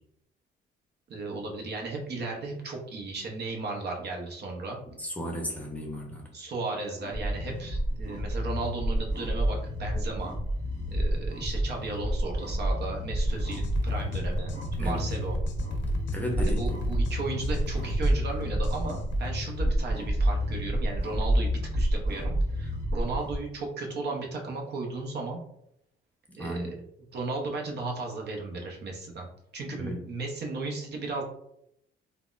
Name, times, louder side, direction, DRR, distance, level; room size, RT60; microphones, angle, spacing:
voice 1, 1.1-4.8 6.3-10.3 10.9-15.4 16.4-25.4 26.4-26.8 27.1-29.3 29.5-31.2, right 3 dB, 55° right, 0 dB, 0.7 m, -35 dB
voice 2, 5.0-6.3 14.8-15.0 16.1-16.6 26.4-26.7 29.8-30.0, equal, 5° left, 0 dB, 0.6 m, -34 dB
sound 1, 7.0-23.4, equal, 35° right, 1.4 m, -29 dB
sound 2, 13.3-19.4, left 1 dB, 70° left, 0.5 m, -37 dB
3.4 x 2.1 x 2.4 m, 0.75 s
cardioid pair, 90°, 20 cm